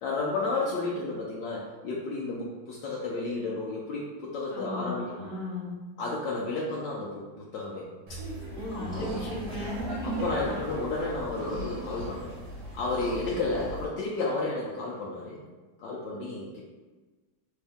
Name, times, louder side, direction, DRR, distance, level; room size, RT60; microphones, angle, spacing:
voice 1, 0.0-5.1 6.0-8.2 8.7-9.1 10.0-12.3 12.7-15.4 15.8-16.6, left 3 dB, 75° left, -5 dB, 1.0 m, -32 dB
voice 2, 4.5-5.7 8.5-10.6, left 1 dB, 60° left, -4 dB, 1.2 m, -37 dB
Laughter, 8.1-13.9, right 1 dB, 60° right, 1.2 m, -38 dB
sound 1, 8.7-10.2 10.5-10.6 11.0-13.8, equal, 20° right, 1.2 m, -41 dB
3.5 x 2.7 x 3.4 m, 1.3 s
omnidirectional pair, 2.4 m